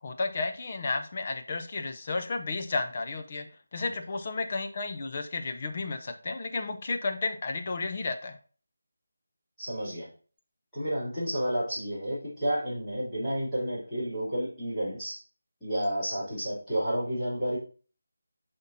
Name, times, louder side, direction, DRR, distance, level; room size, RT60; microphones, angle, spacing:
voice 1, 0.0-8.4, left 3 dB, 25° left, 6 dB, 0.6 m, -32 dB
voice 2, 9.6-10.1 10.7-15.2 15.6-17.6, equal, 5° left, -17 dB, 3.2 m, -31 dB
8.1 x 5.2 x 2.7 m, 0.39 s
figure-of-eight pair, 180°, 0 cm